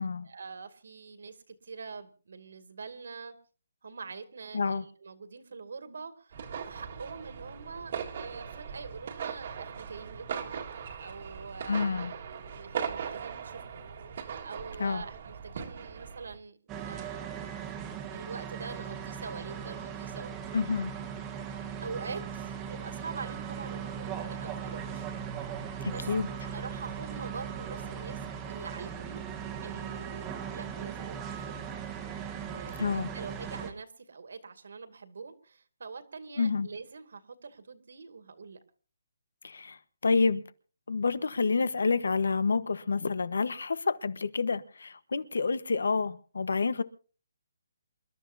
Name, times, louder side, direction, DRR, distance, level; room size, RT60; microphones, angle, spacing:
voice 1, 0.2-3.3 3.8-12.1 12.6-13.8 14.4-17.5 18.1-20.3 21.8-25.0 25.9-26.0 26.5-28.2 28.5-29.2 29.6-31.8 32.3-38.6, right 4 dB, 65° right, 2.3 m, -44 dB
voice 2, 4.5-4.8 11.7-12.1 14.8-15.0 20.5-20.9 25.8-26.3 32.8-33.1 36.4-36.7 39.4-40.4 40.9-46.8, left 4 dB, 75° left, 1.2 m, -28 dB
sound 1, 6.3-16.4, right 7 dB, 35° right, 1.7 m, -39 dB
sound 2, 16.7-33.7, right 7 dB, 10° right, 1.3 m, -38 dB
28.0 x 13.0 x 2.7 m
hypercardioid pair, 175°, 0 cm